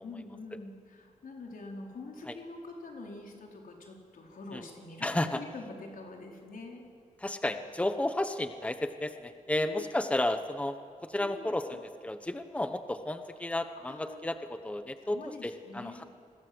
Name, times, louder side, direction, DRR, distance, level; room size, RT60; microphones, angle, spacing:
voice 1, 0.0-6.8 9.5-9.9 11.2-11.8 13.9-14.2 15.0-16.0, left 2 dB, 85° left, 0 dB, 4.5 m, -45 dB
voice 2, 5.0-5.4 7.2-16.0, left 1 dB, 10° left, 8 dB, 1.1 m, -33 dB
29.0 x 21.5 x 8.0 m, 2.2 s
wide cardioid pair, 120°, 14 cm